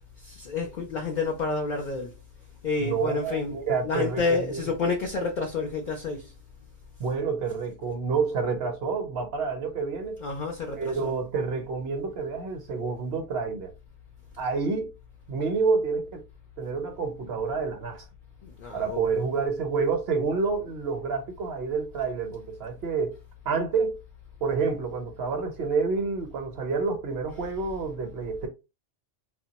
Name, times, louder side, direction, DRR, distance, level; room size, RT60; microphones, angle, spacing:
voice 1, 0.2-2.1 2.6-6.3 10.2-11.1 18.4-19.2 27.4-27.5, left 4 dB, 55° left, 0.5 m, -30 dB
voice 2, 2.8-4.7 7.0-10.2 10.7-13.7 14.4-14.9 15.3-16.2 16.6-18.0 18.7-23.2 23.5-24.0 24.4-28.5, right 4 dB, 65° right, 0.9 m, -28 dB
2.2 x 2.2 x 3.9 m
omnidirectional pair, 1.2 m